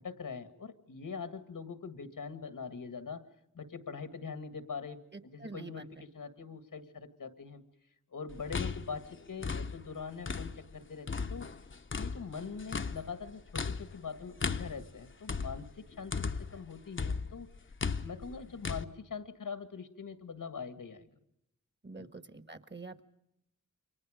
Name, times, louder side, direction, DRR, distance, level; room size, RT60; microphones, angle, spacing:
voice 1, 0.0-3.3 3.5-7.6 8.1-11.5 11.9-17.5 18.0-21.1 22.0-22.1, left 5 dB, 90° left, 10 dB, 2.0 m, -43 dB
sound 1, 8.3-10.7 11.1-16.6 17.0-18.8, left 5 dB, 40° left, 0.8 m, -37 dB
voice 2, 22.3-23.0, right 3 dB, 35° right, 11 dB, 1.4 m, -45 dB
29.0 x 24.0 x 5.1 m, 0.81 s
wide cardioid pair, 100°, 31 cm